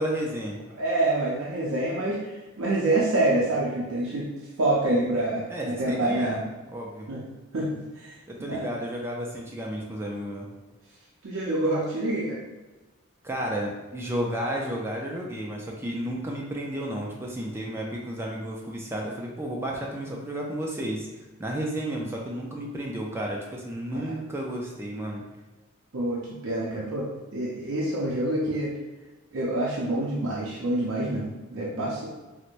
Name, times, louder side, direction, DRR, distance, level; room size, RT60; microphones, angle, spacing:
voice 1, 0.0-0.6 5.5-6.4 6.7-7.2 8.3-10.5 13.2-21.1 21.4-25.2, right 1 dB, 10° right, -2 dB, 0.3 m, -32 dB
voice 2, 0.8-4.3 4.6-6.4 7.1-7.2 7.5-8.1 8.5-8.7 11.2-12.4 23.9-24.2 25.9-27.1 27.3-28.7 29.3-32.1, right 2 dB, 80° right, -5 dB, 0.5 m, -27 dB
4.3 x 2.1 x 2.5 m, 1.2 s
head